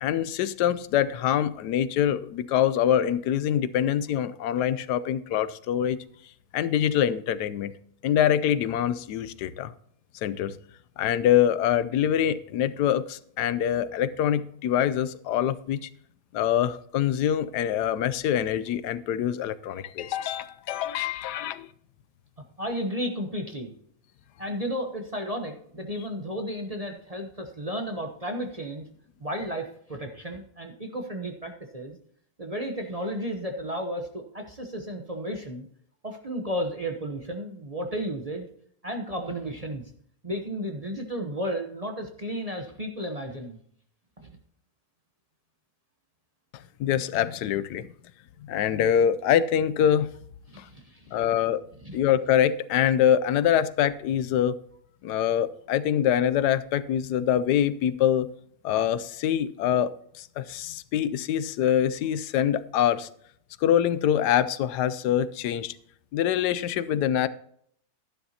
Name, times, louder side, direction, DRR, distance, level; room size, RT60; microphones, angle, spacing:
voice 1, 0.0-6.0 6.5-7.7 8.0-9.7 10.2-10.5 11.0-15.9 16.3-21.7 46.8-47.9 48.5-50.1 51.1-51.6 51.9-54.5 55.0-58.3 58.6-59.9 60.2-63.1 63.6-65.7 66.1-67.3, left 10 dB, 85° left, 15 dB, 1.2 m, -24 dB
voice 2, 22.6-23.7 24.4-28.9 29.2-32.0 32.4-35.7 36.0-38.5 38.8-39.9 40.2-43.6 44.2-44.4 50.5-51.3 51.8-52.0, equal, 30° right, 3 dB, 0.8 m, -33 dB
12.5 x 11.0 x 2.8 m, 0.66 s
omnidirectional pair, 1.7 m